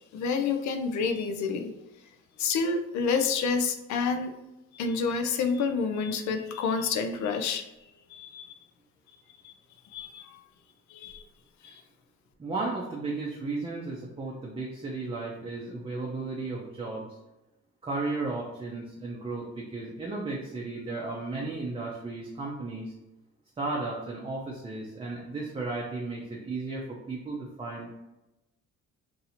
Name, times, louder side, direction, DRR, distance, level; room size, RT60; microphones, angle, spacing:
voice 1, 0.1-1.8 2.4-4.3 4.7-7.6 8.1-8.5 9.4-9.5 9.9-10.4 10.9-11.2 11.6-11.7, left 5 dB, 75° left, 6 dB, 0.5 m, -28 dB
voice 2, 12.4-17.1 17.8-22.9 23.6-28.0, right 3 dB, 20° right, -3 dB, 0.5 m, -34 dB
2.7 x 2.7 x 4.1 m, 0.94 s
cardioid pair, 130°, 29 cm